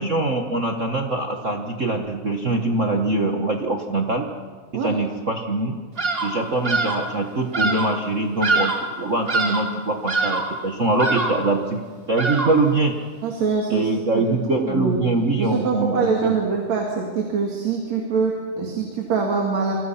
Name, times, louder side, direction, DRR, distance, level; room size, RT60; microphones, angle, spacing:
voice 1, 0.0-4.3 4.8-5.8 6.2-11.8 12.1-12.9 13.7-16.3, right 2 dB, 45° right, 3 dB, 0.9 m, -23 dB
Bird vocalization bird call bird song, 6.0-6.4 6.6-7.1 7.5-8.0 8.4-8.9 9.3-9.7 10.1-10.6 11.0-11.5 12.2-12.7, right 3 dB, 20° right, 2.3 m, -24 dB
voice 2, 13.2-15.0 15.4-19.7, right 5 dB, 65° right, 0 dB, 3.6 m, -24 dB
27.5 x 24.5 x 5.7 m, 1.5 s
omnidirectional pair, 3.5 m